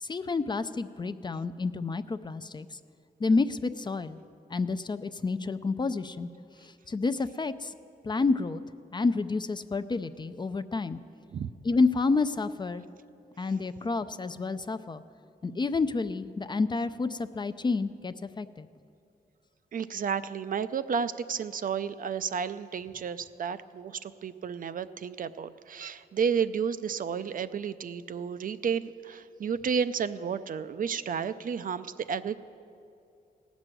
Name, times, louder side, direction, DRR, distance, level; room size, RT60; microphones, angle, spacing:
voice 1, 0.0-2.8 3.2-4.2 4.5-6.3 6.6-7.7 8.0-8.6 8.9-11.0 11.6-12.8 13.4-15.0 15.4-18.7, left 3 dB, 25° left, 11 dB, 0.4 m, -29 dB
voice 2, 19.7-32.4, right 7 dB, 55° right, 13 dB, 0.4 m, -32 dB
17.0 x 6.2 x 9.0 m, 2.5 s
cardioid pair, 105°, 17 cm